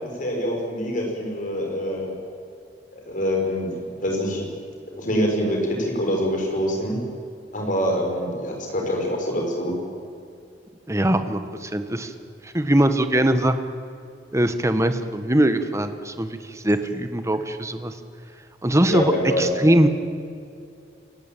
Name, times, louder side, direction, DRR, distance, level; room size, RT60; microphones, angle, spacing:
voice 1, 0.0-2.1 2.9-3.7 4.0-4.5 4.9-7.0 7.5-9.7 18.9-19.5, equal, 50° left, 1 dB, 5.9 m, -25 dB
voice 2, 10.9-12.1 12.4-13.5 14.3-17.9 18.6-19.9, right 1 dB, 15° right, 9 dB, 1.3 m, -21 dB
27.0 x 16.0 x 9.0 m, 2.5 s
head